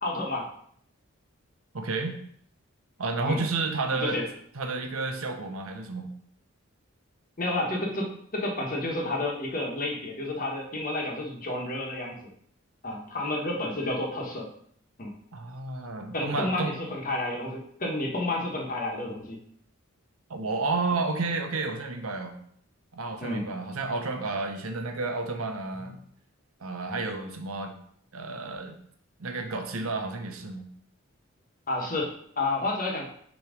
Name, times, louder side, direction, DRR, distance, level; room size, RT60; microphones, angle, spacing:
voice 1, 0.0-0.5 3.3-3.4 3.9-4.2 7.4-12.2 12.8-14.5 15.0-15.1 16.1-19.4 23.2-23.4 31.7-33.1, left 2 dB, 40° left, 0 dB, 1.2 m, -30 dB
voice 2, 1.7-2.2 3.0-4.2 4.5-6.1 15.3-16.7 20.3-22.3 22.9-26.0 26.6-27.7 28.1-28.8 29.2-30.7, right 3 dB, 90° right, 5 dB, 0.9 m, -31 dB
6.2 x 3.1 x 5.0 m, 0.64 s
head